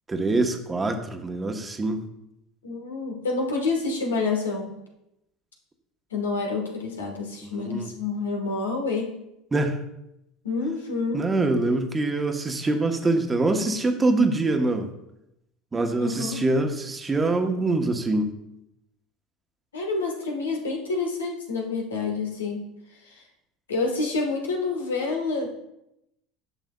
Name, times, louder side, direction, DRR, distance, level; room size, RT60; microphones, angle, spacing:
voice 1, 0.1-2.0 7.4-7.9 9.5-9.8 11.1-14.9 15.7-18.3, right 2 dB, 20° right, 5 dB, 1.0 m, -24 dB
voice 2, 2.6-4.8 6.1-9.1 10.4-11.3 11.7-11.8 16.0-16.4 19.7-22.7 23.1-23.2 23.7-25.5, left 3 dB, 85° left, 1 dB, 1.4 m, -28 dB
10.5 x 6.1 x 2.3 m, 0.84 s
hypercardioid pair, 75°, 0 cm